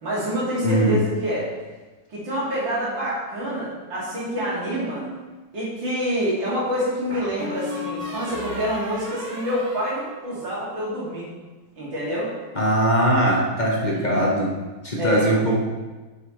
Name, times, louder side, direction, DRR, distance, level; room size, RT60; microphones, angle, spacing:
voice 1, 0.0-1.5 2.1-5.0 5.5-11.3 11.8-12.3 13.9-14.2 15.0-15.3, equal, 80° right, -7 dB, 3.4 m, -27 dB
voice 2, 0.6-1.0 12.5-14.5 14.8-15.5, right 1 dB, 25° left, -3 dB, 1.2 m, -20 dB
sound 1, 4.4-5.2 7.1-10.7, left 1 dB, 5° right, 2.9 m, -35 dB
9.6 x 7.1 x 3.2 m, 1.2 s
omnidirectional pair, 2.0 m